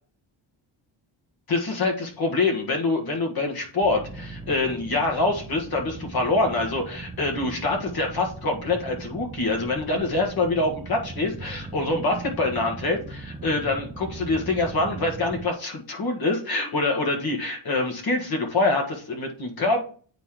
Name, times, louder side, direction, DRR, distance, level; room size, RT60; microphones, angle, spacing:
voice 1, 1.5-19.8, left 2 dB, 50° left, 1 dB, 1.6 m, -25 dB
sound 1, 3.8-15.4, right 3 dB, 10° right, 0.4 m, -39 dB
8.9 x 3.8 x 3.0 m, 0.43 s
cardioid pair, 140°, 47 cm